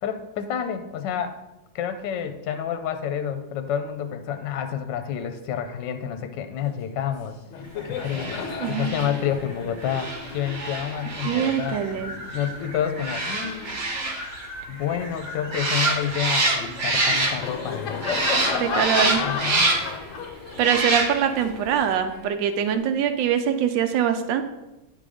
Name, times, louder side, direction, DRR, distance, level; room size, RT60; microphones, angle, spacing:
voice 1, 0.0-1.4 1.7-7.4 7.8-8.4 8.7-11.8 12.3-13.9 14.7-18.0 19.2-19.7 22.7-22.9, left 9 dB, 75° left, 7 dB, 1.2 m, -29 dB
Laughter, 7.0-7.2 7.4-14.2 14.7-22.9, left 5 dB, 55° left, 0.9 m, -34 dB
sound 1, 8.0-17.7 18.0-20.0 20.6-21.4 21.8-21.9, right 2 dB, 40° right, 1.1 m, -27 dB
voice 2, 8.6-9.0 11.2-12.2 18.6-19.2 20.6-24.4, right 8 dB, 75° right, 8 dB, 1.3 m, -23 dB
10.0 x 3.7 x 4.9 m, 0.99 s
omnidirectional pair, 2.1 m